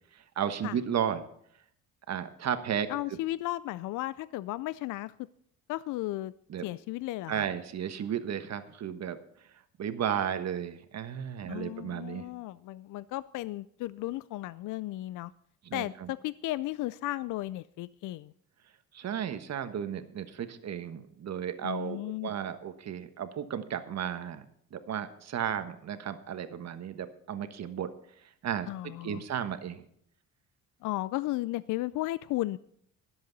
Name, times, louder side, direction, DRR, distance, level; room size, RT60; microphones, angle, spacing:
voice 1, 0.1-1.2 2.1-2.9 6.5-6.7 7.3-9.2 9.8-12.2 15.6-16.1 18.9-24.4 24.7-27.9 28.2-28.7 29.0-29.8, right 9 dB, 50° right, 9 dB, 1.3 m, -34 dB
voice 2, 2.9-5.1 5.7-6.3 6.6-7.4 11.5-15.3 15.7-18.3 21.6-22.3 28.7-29.2 30.8-32.6, left 16 dB, 60° left, 18 dB, 0.5 m, -34 dB
23.5 x 7.9 x 4.0 m, 0.67 s
supercardioid pair, 90°, 34 cm